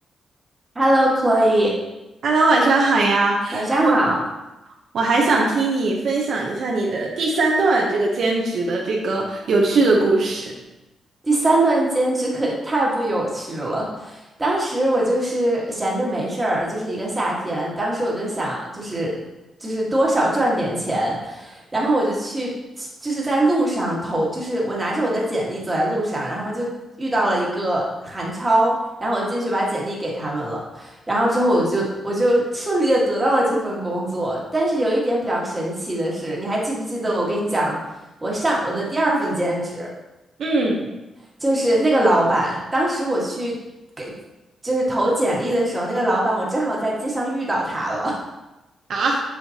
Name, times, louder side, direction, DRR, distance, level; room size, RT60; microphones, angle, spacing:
voice 1, 0.7-1.7 3.5-4.2 11.2-19.2 19.6-26.7 27.0-28.7 29.0-37.8 38.2-39.9 41.4-43.6 44.0-44.1 44.6-48.2, right 1 dB, 15° right, -4 dB, 1.7 m, -22 dB
voice 2, 2.2-3.7 4.9-10.5 40.4-40.9 48.9-49.2, right 3 dB, 65° right, -1 dB, 0.9 m, -20 dB
7.1 x 5.1 x 2.9 m, 0.99 s
cardioid pair, 120°, 0 cm